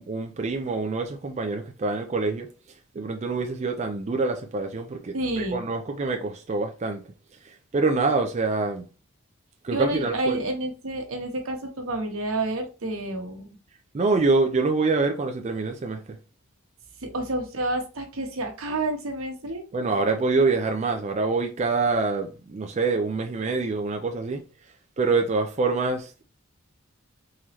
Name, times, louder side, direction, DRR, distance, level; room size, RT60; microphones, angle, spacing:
voice 1, 0.0-2.5 3.0-7.0 7.7-8.8 9.6-10.4 13.9-16.0 19.7-24.4 25.0-26.2, right 3 dB, 35° right, 0.4 m, -25 dB
voice 2, 5.1-5.6 9.7-13.5 17.0-19.6, right 1 dB, 80° right, 1.0 m, -29 dB
3.7 x 3.1 x 2.8 m
head